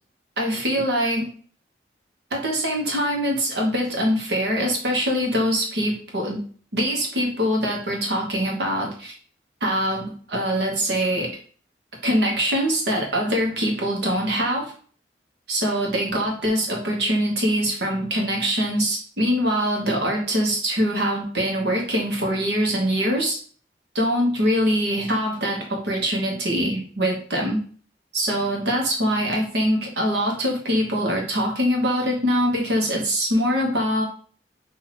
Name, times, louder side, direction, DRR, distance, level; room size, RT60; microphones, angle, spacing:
voice 1, 0.4-1.3 2.3-6.4 6.7-9.1 9.6-11.3 12.0-14.7 15.5-23.4 23.9-27.6 28.1-34.0, equal, 65° right, 0 dB, 1.2 m, -23 dB
5.8 x 2.7 x 3.0 m, 0.44 s
head